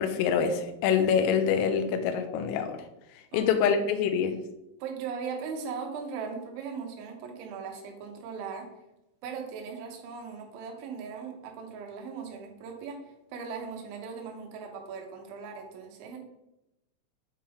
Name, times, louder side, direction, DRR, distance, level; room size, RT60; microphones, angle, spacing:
voice 1, 0.0-2.8 3.3-4.4, left 7 dB, 85° left, 7 dB, 3.2 m, -25 dB
voice 2, 4.8-8.7 9.2-13.0 13.3-16.2, right 5 dB, 75° right, 2 dB, 3.2 m, -39 dB
8.5 x 3.7 x 4.4 m, 0.90 s
omnidirectional pair, 5.9 m